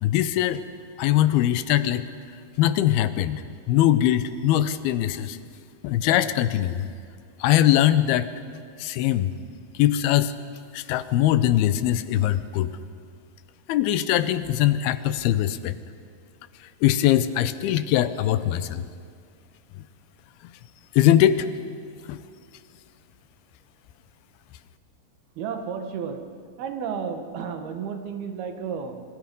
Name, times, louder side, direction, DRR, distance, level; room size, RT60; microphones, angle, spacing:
voice 1, 0.0-0.6 1.0-2.0 2.6-3.4 3.7-5.4 5.8-6.9 7.4-8.3 8.8-9.3 9.8-10.3 10.7-12.7 13.7-15.7 16.8-18.8 21.0-21.5 22.1-22.2, left 12 dB, 85° left, 13 dB, 2.7 m, -21 dB
voice 2, 25.4-26.2 26.6-29.0, right 6 dB, 80° right, 6 dB, 3.4 m, -32 dB
27.0 x 25.0 x 5.4 m, 2.2 s
omnidirectional pair, 4.4 m